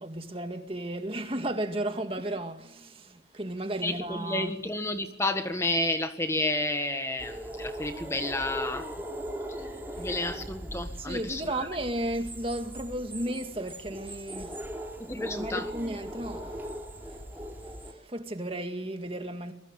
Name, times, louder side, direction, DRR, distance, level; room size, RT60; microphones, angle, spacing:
voice 1, 0.0-4.5 10.0-10.1 11.0-14.6 15.1-16.6 17.1-17.2 17.8-19.5, right 1 dB, 30° right, 2.2 m, -34 dB
voice 2, 3.8-8.9 10.0-11.7 15.0-15.7, left 2 dB, 15° left, 1.7 m, -31 dB
sound 1, 7.2-17.9, equal, 10° right, 3.5 m, -39 dB
25.0 x 22.5 x 9.1 m
head